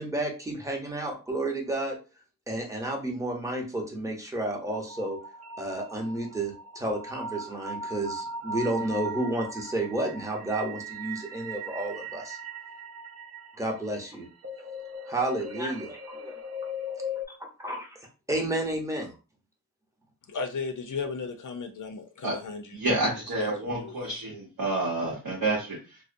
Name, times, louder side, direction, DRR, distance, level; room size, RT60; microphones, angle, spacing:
voice 1, 0.0-2.0 2.5-5.2 5.6-12.4 13.5-14.3 15.1-16.4 17.4-18.0 18.3-19.1, right 1 dB, 10° right, 0.8 m, -31 dB
sound 1, 4.7-17.3, equal, 45° right, 0.6 m, -39 dB
voice 2, 20.3-22.8 23.4-23.5 23.8-23.9, left 5 dB, 60° left, 0.5 m, -34 dB
voice 3, 22.7-26.0, right 2 dB, 85° right, 0.8 m, -29 dB
2.6 x 2.0 x 2.5 m
cardioid pair, 65°, 35 cm